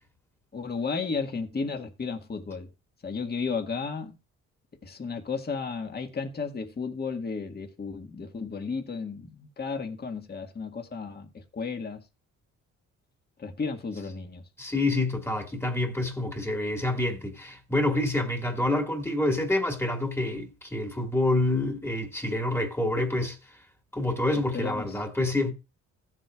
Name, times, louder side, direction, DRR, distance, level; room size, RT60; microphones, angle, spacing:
voice 1, 0.5-2.7 3.0-4.2 4.8-12.0 13.4-14.4 24.5-24.9, left 5 dB, 30° left, 1.7 m, -33 dB
voice 2, 14.6-23.4 23.9-25.5, left 2 dB, 10° left, 1.9 m, -27 dB
15.0 x 7.6 x 2.4 m
cardioid pair, 90°, 30 cm